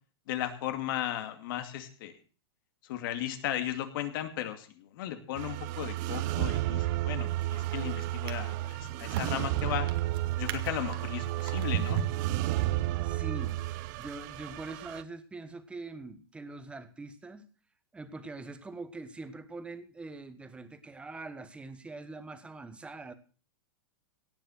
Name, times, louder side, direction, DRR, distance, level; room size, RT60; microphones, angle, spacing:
voice 1, 0.3-2.2 2.8-9.9 10.4-12.0, left 12 dB, 55° left, 2.5 m, -36 dB
sound 1, 5.3-15.0, right 16 dB, 45° right, 0.8 m, -32 dB
Drawer open or close, 7.1-7.5 8.1-13.3 14.0-14.1, right 9 dB, 65° right, 1.9 m, -37 dB
voice 2, 13.0-17.5 17.9-23.1, right 3 dB, 10° right, 1.3 m, -43 dB
17.5 x 7.3 x 6.5 m
supercardioid pair, 145°, 13 cm